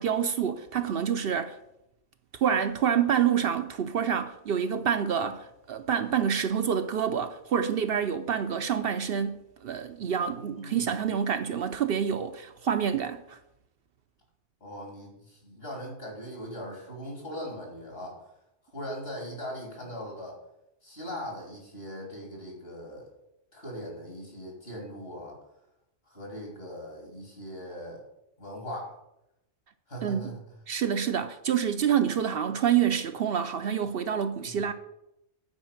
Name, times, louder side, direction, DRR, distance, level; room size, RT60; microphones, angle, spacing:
voice 1, 0.0-1.6 2.3-13.4 30.0-30.4 30.7-34.7, right 8 dB, 65° right, 0.7 m, -27 dB
voice 2, 10.3-11.0 14.6-18.3 18.6-20.4 20.8-23.1 23.5-25.4 26.0-28.0 28.4-29.0 29.9-30.4 34.4-34.6, equal, 55° left, 3.3 m, -40 dB
8.9 x 4.8 x 7.2 m
omnidirectional pair, 1.2 m